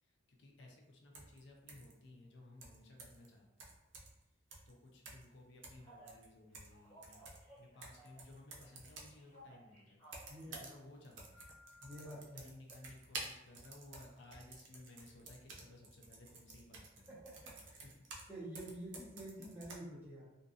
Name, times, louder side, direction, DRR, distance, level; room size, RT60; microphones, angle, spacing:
voice 1, 0.0-3.7 4.7-11.4 12.2-17.1 17.7-18.0, left 2 dB, 65° left, 0 dB, 0.4 m, -58 dB
sound 1, 1.1-1.4 1.7-1.9 2.6-3.3 3.6-4.2 4.5-4.7 5.0-5.3 5.6-6.8 7.0-9.2 10.0-10.8 11.0-18.3 18.5-19.8, right 3 dB, 70° right, 0.5 m, -52 dB
Telephone, 5.8-6.2 6.7-8.3 8.6-10.8 11.3-12.0, right 1 dB, 15° left, 1.3 m, -59 dB
voice 2, 10.3-10.6 11.8-12.5 17.2-17.8 18.3-20.3, right 1 dB, 10° right, -8 dB, 0.7 m, -49 dB
2.5 x 2.3 x 2.6 m, 0.96 s
head